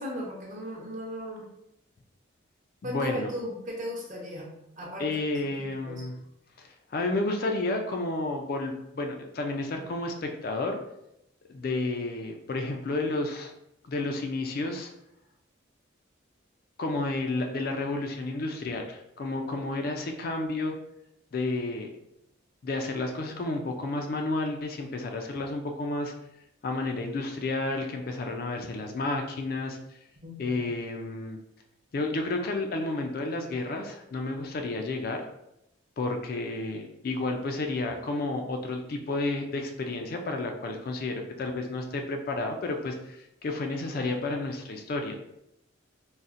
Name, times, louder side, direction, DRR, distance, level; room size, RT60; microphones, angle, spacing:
voice 1, 0.0-1.5 2.8-5.1 5.8-6.0 30.2-30.6, left 1 dB, 40° right, -1 dB, 0.7 m, -36 dB
voice 2, 2.8-3.3 5.0-6.1 6.6-10.8 11.5-13.5 13.8-14.9 16.8-20.7 21.3-21.9 22.6-26.1 26.6-29.8 30.4-31.4 31.9-35.2 36.0-45.2, left 2 dB, 50° left, 3 dB, 0.3 m, -31 dB
4.0 x 2.1 x 2.4 m, 0.83 s
head